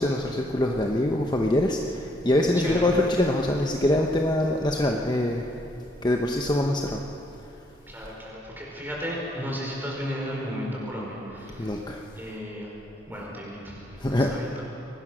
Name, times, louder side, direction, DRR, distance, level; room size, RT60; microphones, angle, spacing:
voice 1, 0.0-5.5 6.0-7.0 11.6-12.0 14.0-14.3, left 1 dB, 25° left, 1 dB, 0.9 m, -24 dB
voice 2, 2.6-2.9 7.9-11.8 12.2-12.7 13.1-14.6, equal, 10° right, -3 dB, 4.8 m, -34 dB
23.5 x 18.5 x 6.3 m, 2.9 s
head